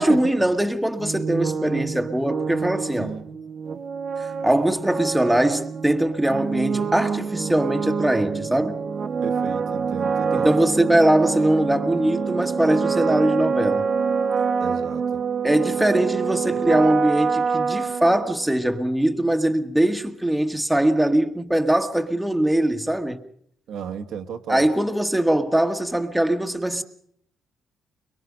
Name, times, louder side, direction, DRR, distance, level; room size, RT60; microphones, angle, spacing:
voice 1, 0.0-3.1 4.2-8.8 10.3-13.8 15.4-23.2 24.5-26.8, right 1 dB, 5° right, 1.4 m, -21 dB
sound 1, 1.0-18.6, right 5 dB, 50° right, 0.9 m, -26 dB
voice 2, 3.0-3.3 9.2-10.5 14.6-15.2 15.9-16.1 23.7-24.7, right 7 dB, 75° right, 1.5 m, -33 dB
22.5 x 22.5 x 5.3 m
cardioid pair, 90°, 0 cm